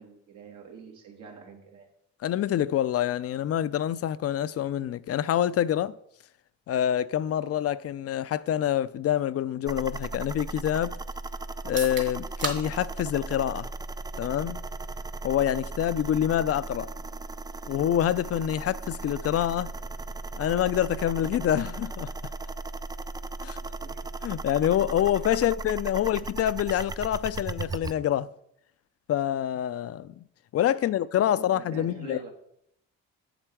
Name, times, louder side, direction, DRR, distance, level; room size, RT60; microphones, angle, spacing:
voice 1, 0.0-1.9 17.0-17.3 23.6-24.1 25.2-25.4 25.9-26.2 31.2-32.3, right 6 dB, 80° right, 2.2 m, -47 dB
voice 2, 2.2-6.0 6.7-10.9 11.6-13.7 14.2-14.6 15.2-16.9 17.7-19.7 20.4-22.1 23.4-23.6 24.2-28.3 29.1-30.2 30.5-32.2, left 11 dB, 50° left, 0.4 m, -26 dB
sound 1, 9.7-27.9, right 3 dB, 15° right, 0.3 m, -37 dB
sound 2, 11.6-25.5, right 5 dB, 55° right, 2.7 m, -46 dB
7.8 x 7.2 x 4.6 m
cardioid pair, 90°, 30 cm